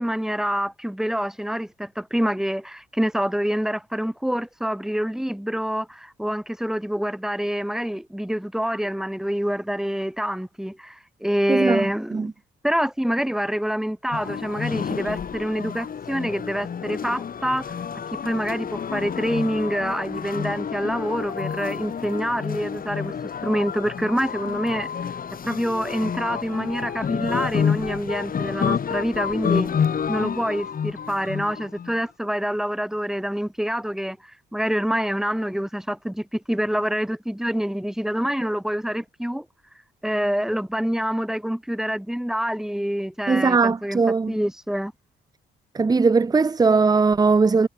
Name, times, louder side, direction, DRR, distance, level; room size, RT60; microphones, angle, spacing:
voice 1, 0.0-12.3 12.6-17.7 18.2-23.1 23.4-24.9 25.4-29.7 30.1-34.2 34.5-39.5 40.0-44.0 44.3-44.9, equal, ahead, 4.2 m, -26 dB
voice 2, 11.5-11.9 12.1-12.3 43.3-44.4 45.7-47.7, right 4 dB, 20° right, 0.6 m, -19 dB
sound 1, 14.1-31.9, left 7 dB, 45° left, 2.3 m, -29 dB
cardioid pair, 90°, 20 cm